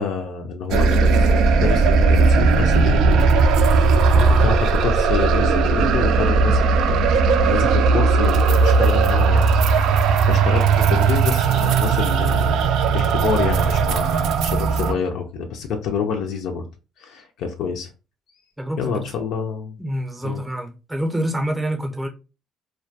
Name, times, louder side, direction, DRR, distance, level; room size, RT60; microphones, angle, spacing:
voice 1, 0.0-3.3 3.8-4.1 4.4-9.5 9.9-12.5 12.9-16.7 17.0-17.9 18.8-19.8 20.2-20.4, left 6 dB, 75° left, 0.4 m, -27 dB
sound 1, 0.7-14.9, right 4 dB, 75° right, 0.3 m, -17 dB
voice 2, 4.1-4.6 18.6-19.0 19.8-22.1, right 1 dB, 5° right, 0.6 m, -27 dB
2.2 x 2.2 x 2.6 m
cardioid pair, 120°, 0 cm